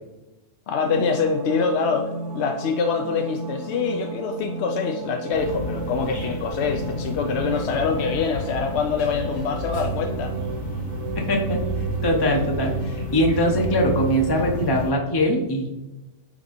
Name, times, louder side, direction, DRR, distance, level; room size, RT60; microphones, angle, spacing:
voice 1, 0.7-10.4, left 5 dB, 65° left, 3 dB, 0.8 m, -25 dB
sound 1, 0.8-14.7, right 6 dB, 75° right, 0.9 m, -33 dB
sound 2, 5.3-14.9, left 4 dB, 45° left, 1.2 m, -33 dB
voice 2, 11.1-11.6 12.0-15.7, equal, 25° left, 0 dB, 0.6 m, -22 dB
4.9 x 4.0 x 5.1 m, 1.0 s
omnidirectional pair, 1.3 m